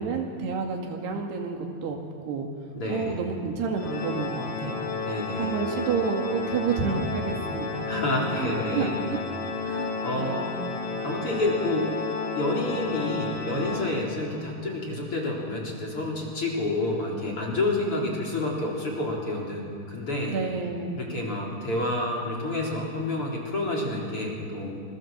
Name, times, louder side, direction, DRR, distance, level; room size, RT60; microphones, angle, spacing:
voice 1, 0.0-2.0 2.3-2.5 2.9-4.8 5.4-7.9 8.3-9.2 9.7-10.5 20.2-20.9, right 5 dB, 75° right, 2 dB, 4.4 m, -30 dB
voice 2, 2.8-3.2 5.1-5.6 7.9-8.9 10.0-10.4 11.0-11.9 12.4-20.4 21.0-24.8, left 2 dB, 35° left, -2 dB, 4.3 m, -29 dB
Organ, 3.8-14.5, left 4 dB, 90° left, 5.3 m, -32 dB
26.5 x 21.5 x 7.5 m, 2.4 s
omnidirectional pair, 4.9 m